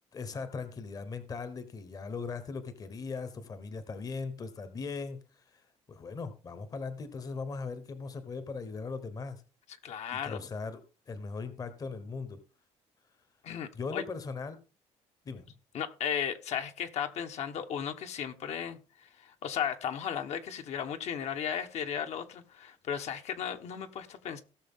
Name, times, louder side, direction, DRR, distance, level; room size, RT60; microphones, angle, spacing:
voice 1, 0.1-5.6 5.9-9.4 10.1-12.4 13.7-14.6 15.2-15.5, left 4 dB, 30° left, 1.0 m, -39 dB
voice 2, 9.8-10.5 13.4-14.0 15.7-24.4, left 8 dB, 60° left, 1.2 m, -35 dB
17.5 x 6.6 x 3.7 m
cardioid pair, 160°, 13 cm